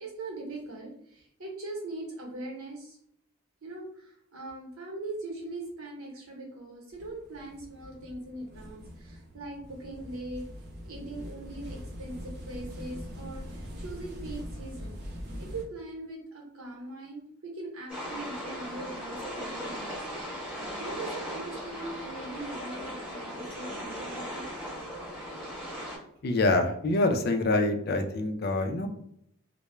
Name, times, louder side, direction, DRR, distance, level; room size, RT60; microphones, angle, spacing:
voice 1, 0.0-3.0 3.6-10.5 10.8-15.0 15.4-20.0 20.8-24.5, right 2 dB, 80° right, -1 dB, 0.9 m, -41 dB
sound 1, 6.9-15.6, equal, 50° right, 0.6 m, -42 dB
sound 2, 17.9-26.0, equal, 5° right, 0.8 m, -38 dB
voice 2, 26.2-28.9, left 2 dB, 50° left, 6 dB, 0.3 m, -26 dB
2.2 x 2.0 x 3.0 m, 0.71 s
head